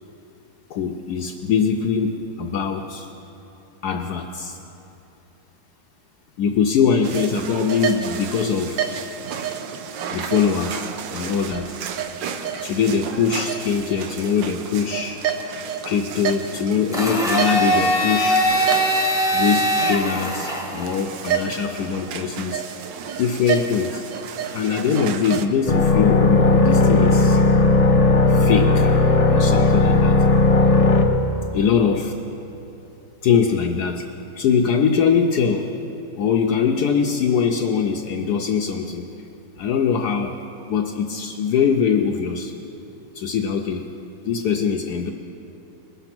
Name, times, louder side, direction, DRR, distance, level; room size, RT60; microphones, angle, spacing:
voice 1, 0.7-3.1 3.8-4.6 6.4-8.9 10.1-11.8 12.6-15.2 15.8-18.4 19.3-22.6 23.2-24.0 24.5-27.4 28.3-28.9 29.2-30.2 31.5-32.1 33.2-34.0 34.4-35.7 36.2-39.0 39.6-40.4 40.7-42.5 43.1-43.9 44.2-45.1, left 6 dB, 70° left, 2 dB, 1.1 m, -22 dB
sound 1, 7.0-25.5, right 8 dB, 85° right, 1.4 m, -30 dB
Domestic sounds home sounds, 16.9-21.0, equal, ahead, 1.0 m, -21 dB
sound 2, 25.7-31.1, left 3 dB, 50° left, 0.4 m, -16 dB
20.5 x 6.9 x 5.9 m, 2.9 s
omnidirectional pair, 2.0 m